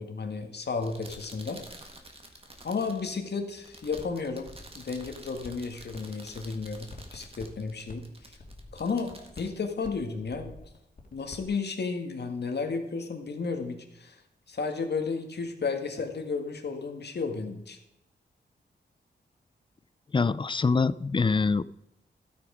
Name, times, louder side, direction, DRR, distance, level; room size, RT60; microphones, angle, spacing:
voice 1, 0.0-1.6 2.6-8.4 8.7-10.5 11.1-14.2 14.5-17.8, left 4 dB, 65° left, 5 dB, 1.8 m, -33 dB
sound 1, 0.7-10.5, right 1 dB, 30° right, 1.7 m, -50 dB
sound 2, 4.0-4.1 4.4-6.0 6.3-11.5, left 2 dB, 50° left, 2.4 m, -48 dB
voice 2, 20.1-21.8, left 4 dB, 25° left, 19 dB, 0.4 m, -25 dB
13.0 x 8.7 x 5.0 m, 0.87 s
wide cardioid pair, 100°, 19 cm